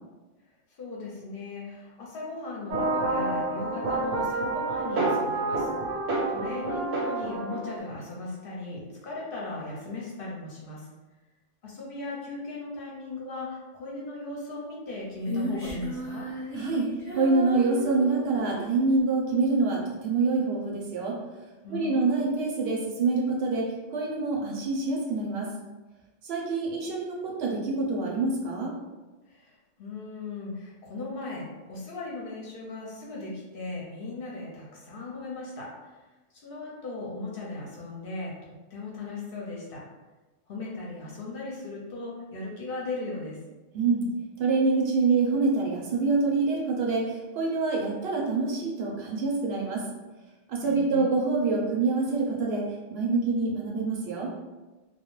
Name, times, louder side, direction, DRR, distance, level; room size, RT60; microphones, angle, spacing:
voice 1, 0.8-10.9 11.6-16.3 21.6-22.2 29.3-29.5 29.8-36.0 36.3-38.3 38.7-39.8 40.5-43.4 50.6-51.1, left 3 dB, 60° left, -4 dB, 0.7 m, -37 dB
sound 1, 2.7-7.8, right 2 dB, 85° right, 1.0 m, -28 dB
Female singing, 15.2-18.7, right 1 dB, 15° left, 0.7 m, -36 dB
voice 2, 16.5-16.9 17.1-21.2 21.7-25.5 26.2-28.7 43.7-44.0 44.4-49.8 50.5-52.6 52.9-54.3, right 3 dB, 65° right, -2 dB, 0.7 m, -26 dB
2.2 x 2.0 x 3.0 m, 1.2 s
omnidirectional pair, 1.3 m